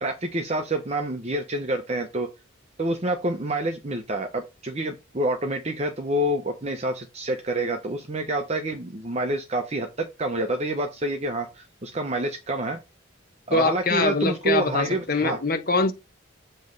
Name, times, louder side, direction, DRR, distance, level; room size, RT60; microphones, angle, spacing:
voice 1, 0.0-2.3 2.8-12.8 13.5-15.4, right 1 dB, 30° right, 0.7 m, -27 dB
voice 2, 13.5-15.9, left 3 dB, 45° left, 0.9 m, -23 dB
7.7 x 3.1 x 5.2 m
head